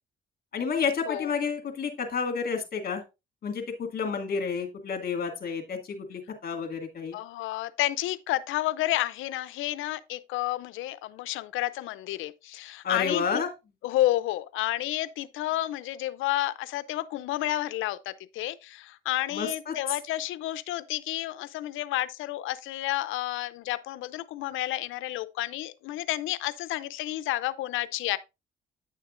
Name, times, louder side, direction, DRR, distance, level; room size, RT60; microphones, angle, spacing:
voice 1, 0.5-3.0 3.4-7.2 12.8-13.5 19.3-19.7, left 5 dB, 50° left, 2.4 m, -30 dB
voice 2, 7.1-13.2 13.8-28.2, left 15 dB, 90° left, 0.6 m, -30 dB
9.5 x 6.5 x 2.5 m
cardioid pair, 90°, 20 cm